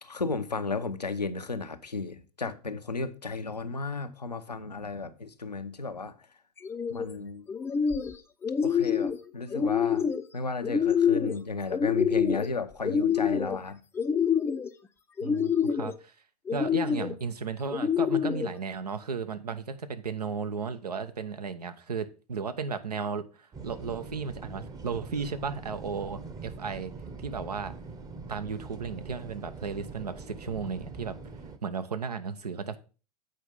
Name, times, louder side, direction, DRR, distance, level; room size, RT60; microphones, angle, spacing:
voice 1, 0.0-6.2 6.9-7.5 8.6-13.8, left 4 dB, 85° left, 0.7 m, -34 dB
sound 1, 6.6-7.1 7.5-8.1 8.4-9.2 9.5-10.2 10.6-11.4 11.7-12.5 12.8-13.6 13.9-14.7 15.2-15.9 16.5-17.1 17.7-18.5, left 7 dB, 10° left, 0.5 m, -26 dB
voice 2, 15.2-16.1 16.5-26.9 27.2-27.7 28.3-31.2 31.6-32.8, right 5 dB, 75° right, 0.8 m, -35 dB
sound 2, 23.5-31.6, right 4 dB, 20° right, 0.8 m, -43 dB
7.8 x 5.0 x 5.3 m
figure-of-eight pair, 90°, 20 cm